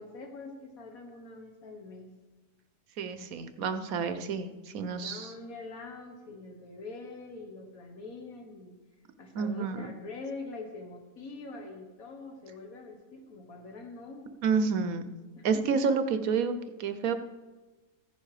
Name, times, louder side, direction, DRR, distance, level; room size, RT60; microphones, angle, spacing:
voice 1, 0.0-2.1 4.9-8.8 9.2-14.4 15.4-15.6, left 3 dB, 90° left, 2 dB, 2.0 m, -44 dB
voice 2, 3.0-5.3 9.3-9.9 14.4-15.1 15.4-17.1, right 5 dB, 85° right, 10 dB, 1.3 m, -29 dB
15.0 x 10.0 x 4.9 m, 1.3 s
omnidirectional pair, 1.4 m